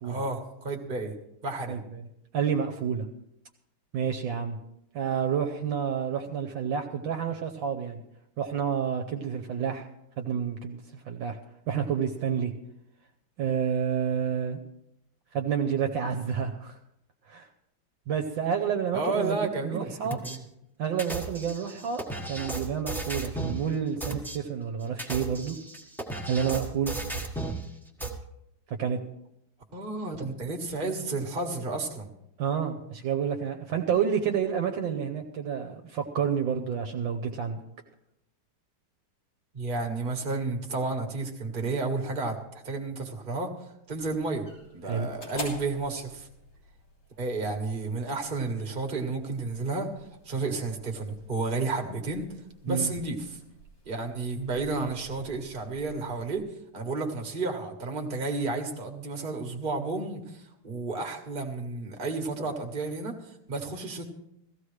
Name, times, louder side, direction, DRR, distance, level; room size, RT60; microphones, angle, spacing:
voice 1, 0.0-1.1 1.4-1.8 18.9-20.4 29.7-32.1 39.5-42.4 42.6-43.5 43.9-44.4 44.7-46.3 47.2-49.9 50.2-52.3 52.6-53.4 53.8-56.4 56.7-64.0, right 3 dB, 25° right, 2 dB, 1.4 m, -32 dB
voice 2, 2.3-3.1 3.9-4.6 4.9-8.0 8.4-9.9 10.2-11.4 11.7-12.5 13.4-14.6 15.3-16.8 17.3-17.5 18.1-20.2 20.8-25.6 26.3-26.9 28.7-29.0 32.4-37.6 44.8-45.1 52.7-52.9, right 7 dB, 65° right, 5 dB, 1.4 m, -29 dB
sound 1, 20.1-20.4 21.0-23.6 24.0-24.4 24.9-27.6 28.0-28.1, right 2 dB, ahead, 1.1 m, -34 dB
sound 2, 43.9-56.4, left 1 dB, 80° left, 4.3 m, -48 dB
17.0 x 14.5 x 3.3 m, 0.81 s
omnidirectional pair, 2.4 m